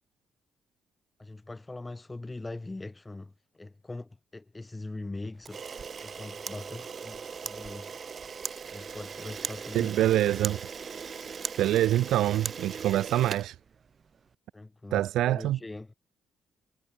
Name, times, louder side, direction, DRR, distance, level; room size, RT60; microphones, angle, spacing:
voice 1, 1.2-5.6 6.0-8.0 8.7-9.9 14.5-15.9, left 2 dB, 15° left, 1.6 m, -42 dB
Camera, 5.4-14.2, right 6 dB, 45° right, 1.0 m, -39 dB
voice 2, 9.7-10.6 11.6-13.6 14.9-15.6, right 13 dB, 85° right, 0.5 m, -25 dB
cardioid pair, 90°, 0 cm